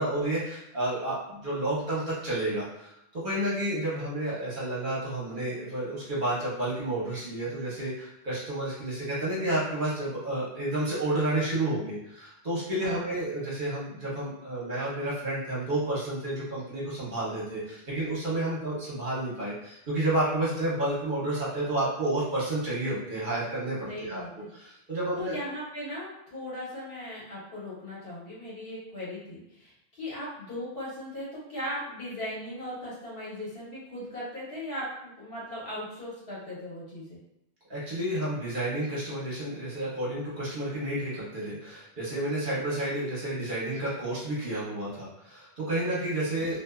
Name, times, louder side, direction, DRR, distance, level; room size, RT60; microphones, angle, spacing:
voice 1, 0.0-24.2 24.5-25.4 37.7-46.6, right 1 dB, 50° right, -8 dB, 1.1 m, -30 dB
voice 2, 12.8-13.1 23.9-24.5 25.1-37.2, left 1 dB, 60° left, -8 dB, 1.3 m, -38 dB
2.6 x 2.4 x 2.3 m, 0.83 s
omnidirectional pair, 1.1 m